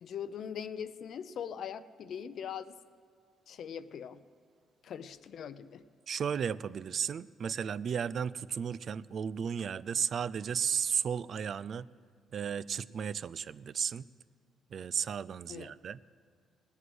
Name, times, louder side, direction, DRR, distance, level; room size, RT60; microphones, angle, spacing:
voice 1, 0.0-2.7 3.5-4.2 4.8-5.8 15.5-15.7, left 8 dB, 65° left, 14 dB, 0.6 m, -41 dB
voice 2, 6.1-11.9 12.3-14.0 14.7-16.0, right 7 dB, 55° right, 18 dB, 0.3 m, -34 dB
18.0 x 7.9 x 7.9 m, 2.1 s
cardioid pair, 90°, 0 cm